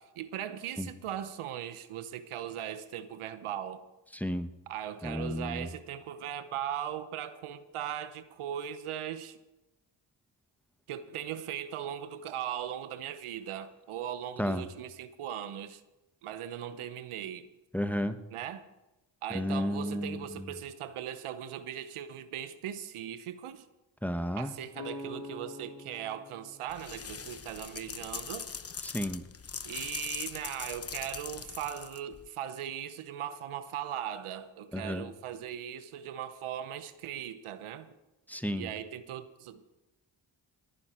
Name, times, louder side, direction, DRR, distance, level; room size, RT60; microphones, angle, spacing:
voice 1, 0.0-3.8 4.7-9.4 10.9-15.8 16.2-17.5 18.3-18.7 19.2-23.7 24.4-28.5 29.6-37.9 38.5-39.6, right 10 dB, 80° right, 12 dB, 0.9 m, -39 dB
voice 2, 4.1-4.5 5.0-5.7 14.4-14.6 17.7-18.2 19.3-20.5 24.0-24.5 28.8-29.2 34.7-35.0 38.3-38.7, equal, 5° left, 9 dB, 1.2 m, -32 dB
sound 1, 24.7-28.5, left 2 dB, 75° left, 5.6 m, -47 dB
sound 2, 26.7-32.3, left 5 dB, 30° left, 0.9 m, -41 dB
20.0 x 9.9 x 4.4 m, 1.0 s
supercardioid pair, 45°, 50 cm